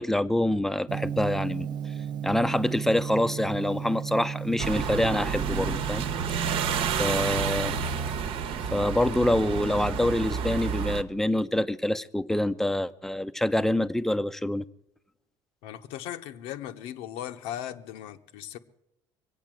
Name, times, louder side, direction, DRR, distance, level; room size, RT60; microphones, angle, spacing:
voice 1, 0.0-1.7 2.2-6.0 6.3-6.6 7.0-7.7 8.7-14.6, left 1 dB, 5° left, 0.6 m, -26 dB
Gong, 0.9-8.2, right 8 dB, 45° right, 0.7 m, -35 dB
sound 1, 4.6-11.0, right 6 dB, 60° right, 1.0 m, -30 dB
voice 2, 15.6-18.6, left 11 dB, 85° left, 1.0 m, -38 dB
22.5 x 8.3 x 7.7 m
cardioid pair, 115°, 10 cm